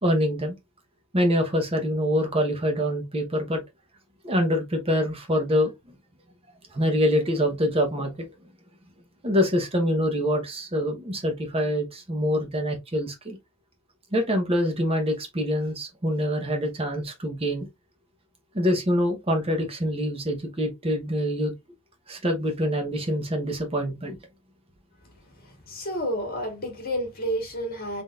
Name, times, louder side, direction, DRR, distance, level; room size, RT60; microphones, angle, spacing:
voice 1, 0.0-0.5 1.1-3.6 4.2-5.7 6.7-8.3 9.2-13.4 14.1-17.7 18.5-21.5 22.1-24.2, equal, 25° right, 0.9 m, -25 dB
voice 2, 25.4-28.0, equal, 45° left, 1.8 m, -30 dB
3.9 x 3.8 x 2.4 m
head